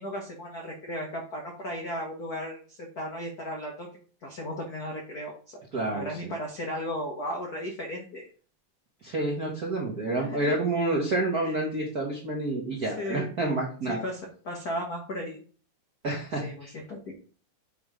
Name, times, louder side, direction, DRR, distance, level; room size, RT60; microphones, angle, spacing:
voice 1, 0.0-3.9 4.2-5.6 5.9-8.2 10.1-10.6 11.4-11.5 12.8-13.3 13.9-15.4 16.4-17.1, equal, 85° left, 1 dB, 0.8 m, -35 dB
voice 2, 5.7-6.3 9.0-14.0 16.0-16.7, right 2 dB, 60° right, -2 dB, 1.0 m, -29 dB
7.9 x 3.4 x 4.9 m, 0.41 s
omnidirectional pair, 3.6 m